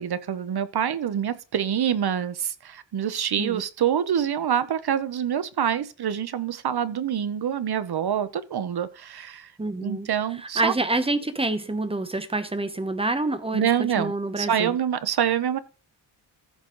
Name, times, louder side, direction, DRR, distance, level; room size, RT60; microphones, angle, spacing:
voice 1, 0.0-9.5 9.8-10.7 13.5-15.6, right 9 dB, 55° right, 0.8 m, -26 dB
voice 2, 9.6-10.1 10.4-14.8, right 2 dB, 10° right, 0.9 m, -27 dB
14.5 x 5.5 x 3.8 m
wide cardioid pair, 145°, 46 cm